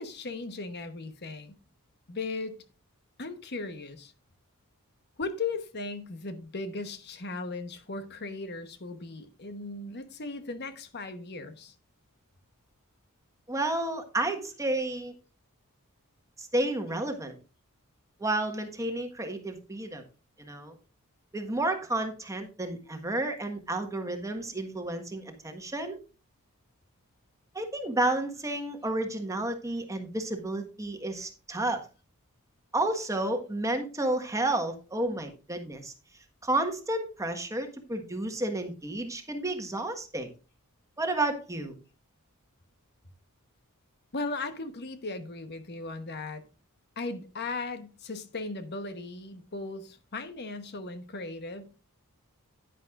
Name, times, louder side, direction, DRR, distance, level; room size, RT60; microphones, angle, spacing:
voice 1, 0.0-1.6 2.1-2.6 3.2-4.1 5.2-11.7 44.1-46.4 47.0-51.7, left 3 dB, 50° left, 1.1 m, -37 dB
voice 2, 13.5-15.1 16.4-17.3 18.2-20.0 20.4-20.7 21.3-26.0 27.5-31.8 32.7-35.9 36.4-40.3 41.0-41.7, right 2 dB, 15° right, 1.5 m, -31 dB
10.5 x 10.5 x 2.5 m
head